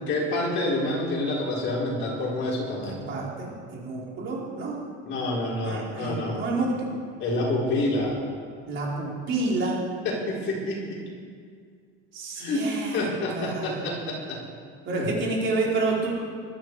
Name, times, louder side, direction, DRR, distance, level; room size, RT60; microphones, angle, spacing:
voice 1, 0.1-3.0 5.0-6.5 7.2-8.2 10.0-11.1 12.4-14.4 14.9-15.1, left 1 dB, 40° left, -4 dB, 5.1 m, -28 dB
voice 2, 3.1-4.7 5.6-6.9 8.7-9.8 12.1-13.1 13.3-13.8 14.8-16.1, right 3 dB, 40° right, -4 dB, 4.6 m, -29 dB
22.0 x 12.5 x 5.0 m, 2.1 s
cardioid pair, 160°, 30 cm